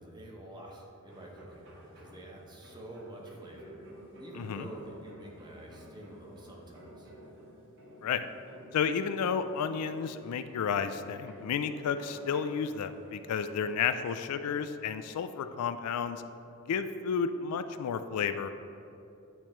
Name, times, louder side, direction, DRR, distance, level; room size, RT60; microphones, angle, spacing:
voice 1, 0.0-3.9 4.2-7.1, right 1 dB, 20° right, -2 dB, 0.9 m, -48 dB
sound 1, 1.1-13.8, right 1 dB, 60° right, 1.1 m, -53 dB
voice 2, 4.3-4.7 8.0-8.2 8.7-16.2 16.7-18.5, left 6 dB, 80° left, 10 dB, 0.3 m, -32 dB
9.1 x 3.1 x 4.3 m, 2.8 s
head